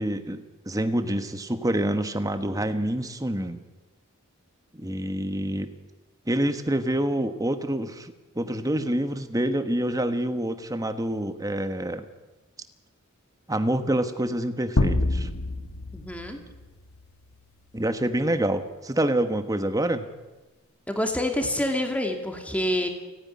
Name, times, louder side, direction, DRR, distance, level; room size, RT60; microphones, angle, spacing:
voice 1, 0.0-3.6 4.7-5.7 6.3-12.0 13.5-15.3 17.7-20.1, right 1 dB, 15° right, 9 dB, 1.2 m, -27 dB
sound 1, 14.8-17.3, left 2 dB, 70° left, 1.2 m, -27 dB
voice 2, 15.9-16.4 20.9-22.9, left 1 dB, 5° left, 4 dB, 2.5 m, -27 dB
29.5 x 9.9 x 9.8 m, 1.2 s
head